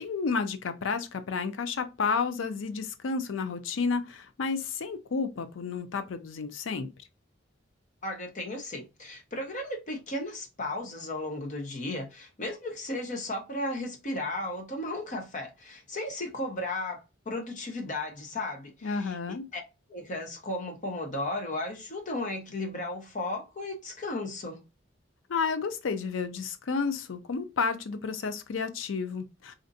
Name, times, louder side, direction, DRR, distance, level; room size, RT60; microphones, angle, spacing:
voice 1, 0.0-6.9 18.8-19.4 25.3-29.5, left 5 dB, 90° left, 0.5 m, -31 dB
voice 2, 8.0-19.6 19.9-24.6, left 1 dB, 40° left, 0.8 m, -35 dB
4.2 x 2.5 x 2.6 m
head